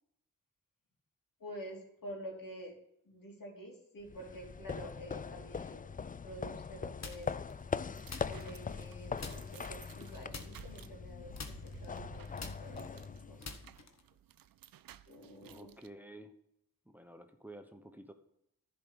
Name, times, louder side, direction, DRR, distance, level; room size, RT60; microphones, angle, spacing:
voice 1, 1.4-2.7 3.0-5.9 6.2-7.6 8.3-13.7 15.1-15.7, equal, 65° left, 0 dB, 3.2 m, -48 dB
sound 1, 4.1-13.7, left 5 dB, 25° left, 0.4 m, -42 dB
sound 2, 7.0-7.5 8.1-8.9 9.2-9.7 10.3-11.1 11.4-14.1, left 3 dB, 50° left, 1.6 m, -47 dB
sound 3, 7.3-15.9, right 11 dB, 75° right, 0.6 m, -57 dB
voice 2, 15.4-16.4 16.9-18.1, right 1 dB, 5° right, 7 dB, 1.0 m, -51 dB
10.5 x 5.1 x 8.2 m, 0.78 s
cardioid pair, 50°, 35 cm